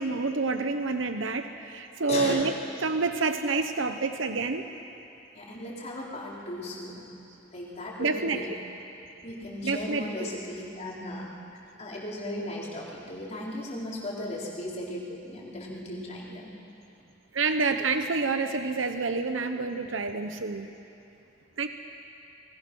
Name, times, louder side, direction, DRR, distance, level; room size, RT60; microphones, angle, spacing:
voice 1, 0.0-2.5 2.8-4.6 8.0-8.4 9.6-10.3 17.3-20.7 21.6-21.7, right 4 dB, 80° right, 7 dB, 0.9 m, -28 dB
voice 2, 2.1-2.5 5.4-7.1 7.5-8.5 9.2-16.5, left 1 dB, 35° left, -4 dB, 4.2 m, -36 dB
28.0 x 21.0 x 6.3 m, 2.8 s
head